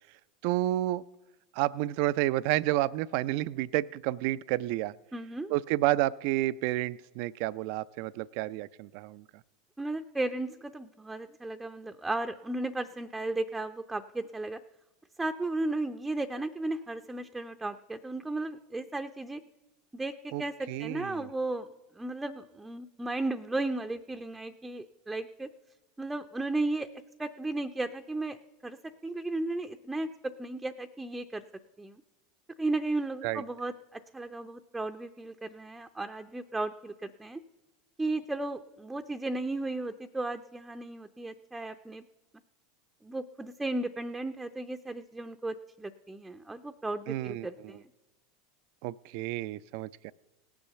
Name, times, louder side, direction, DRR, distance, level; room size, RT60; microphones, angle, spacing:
voice 1, 0.4-1.0 1.5-4.9 5.5-9.2 20.3-21.3 33.2-33.4 47.1-47.5 48.8-50.1, right 16 dB, 65° right, 17 dB, 0.3 m, -30 dB
voice 2, 5.1-5.5 9.8-14.6 15.2-19.4 19.9-21.7 21.9-25.5 26.0-26.9 27.2-28.4 28.6-28.8 29.0-31.5 31.8-32.0 32.6-37.4 38.0-42.0 43.0-47.8, right 2 dB, 10° right, 5 dB, 0.5 m, -35 dB
18.0 x 7.1 x 6.7 m, 1.1 s
hypercardioid pair, 100°, 0 cm